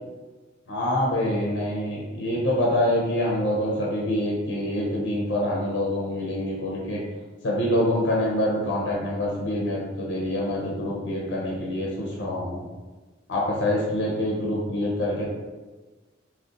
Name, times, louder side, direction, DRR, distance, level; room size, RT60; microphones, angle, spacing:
voice 1, 0.7-7.0 7.4-12.6 13.3-15.2, left 1 dB, 65° left, -3 dB, 0.5 m, -26 dB
3.7 x 2.1 x 2.4 m, 1.2 s
head